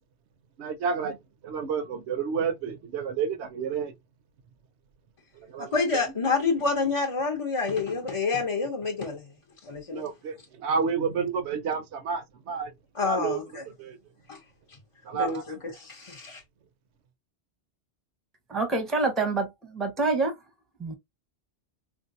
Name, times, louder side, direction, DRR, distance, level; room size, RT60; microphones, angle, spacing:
voice 1, 0.6-1.2 1.4-3.9 5.5-5.8 9.9-10.3 10.6-12.7 13.0-13.4 13.8-14.0 15.1-15.6, right 6 dB, 80° right, 1.0 m, -30 dB
voice 2, 5.7-9.2 9.6-10.0 12.9-13.6 14.3-14.4 15.1-15.4 15.7-16.4, left 4 dB, 35° left, 0.6 m, -28 dB
voice 3, 18.5-20.4 20.8-20.9, right 3 dB, ahead, 0.7 m, -26 dB
3.7 x 2.6 x 2.5 m
omnidirectional pair, 1.1 m